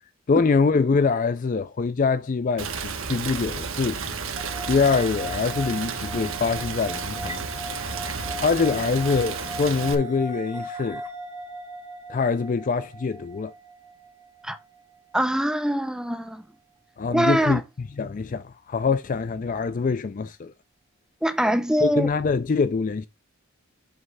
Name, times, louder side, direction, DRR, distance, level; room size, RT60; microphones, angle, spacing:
voice 1, 0.3-4.0 4.7-7.5 8.4-11.0 12.1-13.5 17.0-17.6 18.0-20.5 21.8-23.1, left 4 dB, 35° left, 0.3 m, -24 dB
Rain, 2.6-9.9, right 5 dB, 65° right, 1.1 m, -32 dB
sound 1, 4.4-15.7, right 1 dB, 20° right, 1.8 m, -38 dB
voice 2, 15.1-16.4 17.1-17.6 21.2-22.1, equal, 5° right, 0.7 m, -23 dB
8.0 x 3.2 x 5.4 m
head